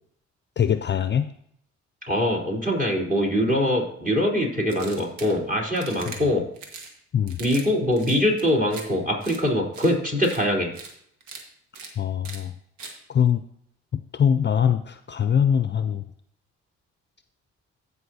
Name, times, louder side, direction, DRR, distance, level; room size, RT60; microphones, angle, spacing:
voice 1, 0.6-1.3 6.1-6.2 7.1-7.4 12.0-12.5 13.1-13.4 13.9-16.1, left 8 dB, 35° left, 11 dB, 0.5 m, -23 dB
voice 2, 2.1-6.4 7.4-10.7, left 1 dB, 25° right, -1 dB, 3.7 m, -23 dB
sound 1, 4.7-5.3 5.7-6.2 6.6-6.9 7.3-7.7 7.9-8.8 9.2-9.4 9.7-9.9 10.2-10.4 10.7-10.9 11.2-11.4 11.7-11.9 12.2-12.4 12.8-12.9, right 4 dB, 80° right, 1.5 m, -40 dB
15.5 x 5.4 x 2.8 m, 0.69 s
supercardioid pair, 55°, 30 cm